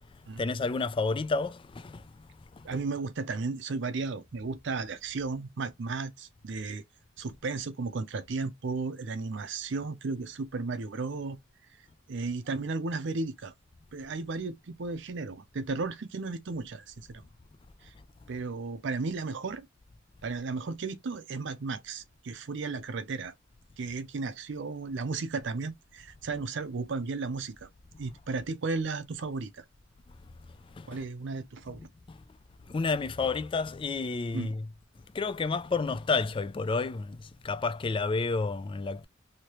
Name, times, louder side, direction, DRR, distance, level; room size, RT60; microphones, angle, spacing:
voice 1, 0.4-2.0 2.7-2.8 30.8-31.0 31.7-31.8 32.7-34.7 35.1-37.2 37.4-39.1, left 4 dB, 25° left, 0.3 m, -30 dB
voice 2, 2.6-6.8 7.2-11.4 11.7-11.8 12.1-13.5 13.9-17.2 17.8-17.9 18.3-19.7 20.2-23.3 23.8-27.7 28.0-29.6 30.9-31.8 34.3-34.5, right 4 dB, 65° right, 0.5 m, -34 dB
3.1 x 2.8 x 2.9 m
head